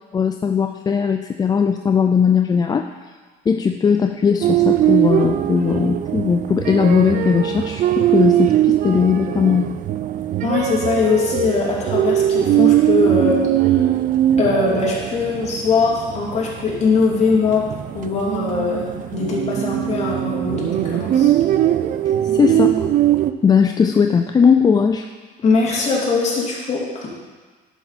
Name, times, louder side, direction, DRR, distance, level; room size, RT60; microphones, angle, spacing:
voice 1, 0.1-2.9 3.5-9.7 22.3-22.9 23.4-25.1, left 6 dB, 25° left, 6 dB, 0.3 m, -18 dB
sound 1, 4.4-23.3, right 12 dB, 50° right, 0.4 m, -20 dB
voice 2, 10.4-13.8 14.4-17.6 17.9-21.3 25.4-27.1, left 4 dB, 40° left, -5 dB, 2.7 m, -21 dB
11.0 x 5.9 x 4.1 m, 1.4 s
cardioid pair, 110°, 17 cm